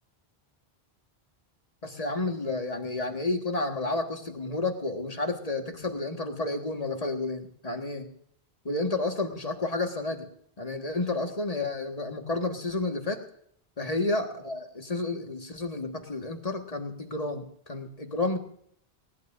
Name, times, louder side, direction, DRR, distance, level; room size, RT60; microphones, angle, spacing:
voice 1, 1.8-8.1 8.6-10.3 10.6-13.2 13.8-18.4, left 2 dB, 35° left, 3 dB, 1.7 m, -31 dB
20.5 x 18.5 x 2.6 m, 0.65 s
omnidirectional pair, 1.1 m